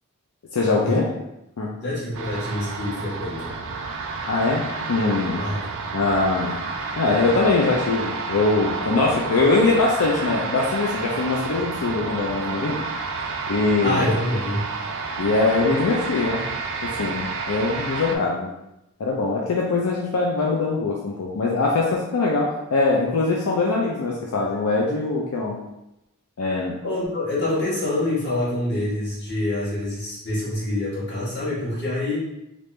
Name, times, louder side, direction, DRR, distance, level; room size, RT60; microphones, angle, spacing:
voice 1, 0.5-1.0 1.6-1.7 4.3-5.4 5.9-6.6 7.0-12.8 13.5-14.1 15.2-16.4 16.8-18.5 19.0-25.6 26.4-26.8, left 3 dB, 85° left, -3 dB, 0.5 m, -22 dB
voice 2, 1.8-3.6 5.4-5.7 13.8-14.7 26.8-32.2, left 1 dB, 50° left, -8 dB, 1.4 m, -26 dB
sound 1, 2.1-18.2, right 4 dB, 65° right, 0.4 m, -30 dB
3.4 x 2.5 x 3.2 m, 0.89 s
head